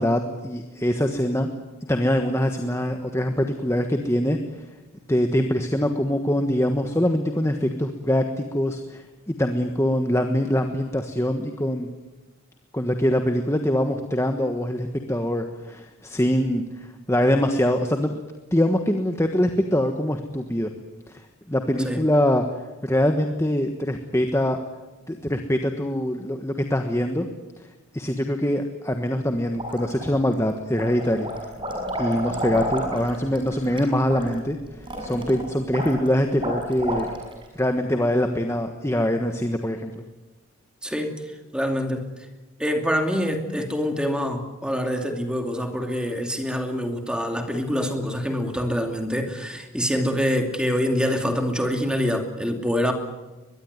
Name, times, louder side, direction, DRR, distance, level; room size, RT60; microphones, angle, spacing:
voice 1, 0.0-1.5 1.8-4.6 5.1-11.9 12.7-18.1 18.5-20.7 21.1-22.4 22.8-24.6 25.1-27.3 27.9-31.3 32.0-37.1 37.5-40.0, equal, 10° left, 5 dB, 1.3 m, -23 dB
sound 1, 29.5-30.3 30.7-37.4, equal, 20° right, 6.4 m, -31 dB
voice 2, 40.8-41.2 41.5-42.1 42.6-52.9, equal, 5° right, 4 dB, 2.5 m, -25 dB
22.5 x 21.5 x 9.5 m, 1.1 s
head